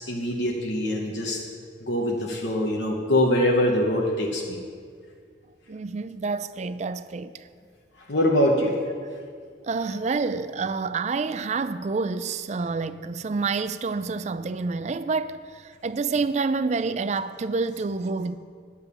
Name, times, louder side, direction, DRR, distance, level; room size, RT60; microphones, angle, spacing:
voice 1, 0.0-1.4 1.8-4.6 8.1-8.8, left 1 dB, 65° left, 1.0 m, -23 dB
voice 2, 5.7-7.3 9.7-18.4, right 4 dB, 35° right, 0.3 m, -28 dB
10.5 x 7.1 x 7.0 m
head